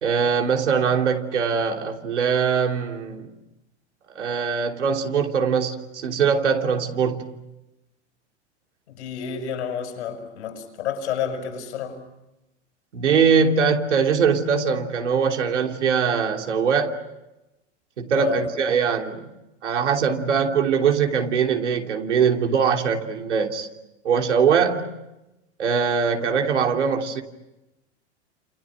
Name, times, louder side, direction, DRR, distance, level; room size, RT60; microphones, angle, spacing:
voice 1, 0.0-3.3 4.1-7.3 12.9-17.0 18.0-19.3 19.6-23.7 24.0-24.9 25.6-27.2, right 6 dB, 90° right, 3.2 m, -22 dB
voice 2, 8.9-12.0 18.1-18.4, left 8 dB, 75° left, 6.6 m, -30 dB
29.0 x 28.0 x 6.4 m
hypercardioid pair, 105°, 34 cm